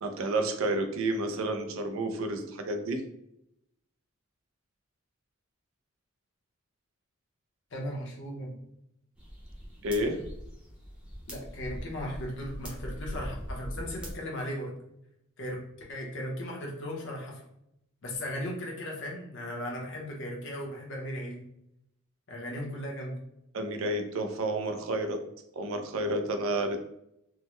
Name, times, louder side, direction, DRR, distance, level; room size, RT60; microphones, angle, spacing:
voice 1, 0.0-3.0 9.8-10.2 23.5-25.2 25.6-26.8, right 1 dB, 75° right, 6 dB, 0.4 m, -30 dB
voice 2, 7.7-8.6 11.3-14.7 15.4-17.4 18.0-21.5 22.3-23.2, equal, 60° left, -1 dB, 0.8 m, -37 dB
sound 1, 9.1-14.2, equal, 5° right, 0.6 m, -41 dB
3.6 x 2.1 x 3.0 m, 0.80 s
head